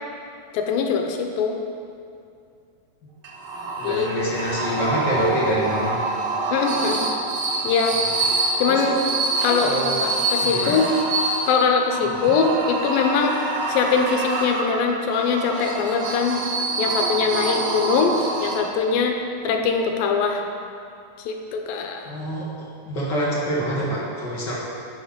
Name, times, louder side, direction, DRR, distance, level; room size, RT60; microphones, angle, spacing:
voice 1, 0.5-1.5 3.8-4.1 6.5-7.0 7.6-7.9 8.6-9.0 9.4-10.9 11.5-13.3 13.7-16.4 16.8-18.1 18.4-19.2 19.4-20.4 21.3-22.0, left 5 dB, 85° left, 3 dB, 2.6 m, -22 dB
sound 1, 3.2-19.0, right 2 dB, 75° right, 1.2 m, -26 dB
voice 2, 3.7-6.0 7.9-8.0 8.7-8.8 9.6-10.0 10.5-10.8 12.2-12.3 22.0-24.6, equal, 45° left, -6 dB, 1.4 m, -26 dB
10.5 x 6.9 x 5.1 m, 2.5 s
omnidirectional pair, 4.0 m